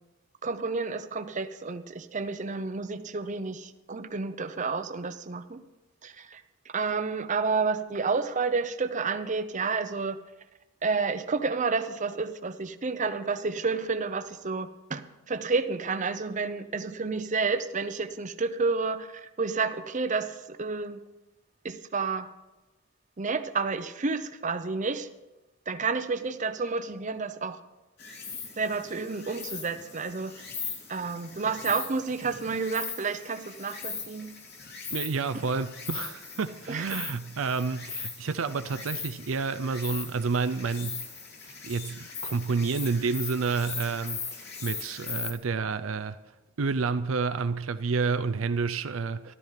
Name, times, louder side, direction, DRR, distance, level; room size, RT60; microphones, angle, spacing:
voice 1, 0.4-5.6 6.0-6.4 6.7-10.2 10.8-19.1 19.4-21.0 21.6-22.3 23.2-25.1 25.7-27.6 28.6-30.3 30.9-34.3 36.7-37.0, right 4 dB, 35° right, 0.7 m, -30 dB
Insect, 28.0-45.3, left 5 dB, 55° left, 2.9 m, -39 dB
voice 2, 34.9-41.0 41.4-46.2 46.6-49.3, right 4 dB, 70° right, 0.5 m, -29 dB
14.0 x 12.5 x 5.7 m
head